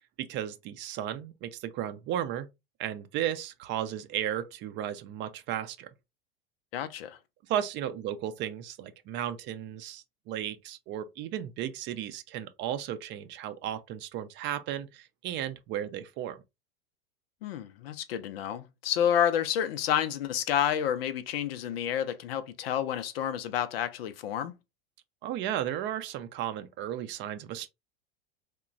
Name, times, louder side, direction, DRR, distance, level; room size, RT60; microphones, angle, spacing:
voice 1, 0.2-2.5 2.8-5.9 7.5-16.4 25.2-27.7, right 11 dB, 40° right, 0.4 m, -34 dB
voice 2, 6.7-7.2 17.4-24.5, left 9 dB, 75° left, 0.5 m, -29 dB
2.9 x 2.2 x 2.4 m
hypercardioid pair, 95°, 30 cm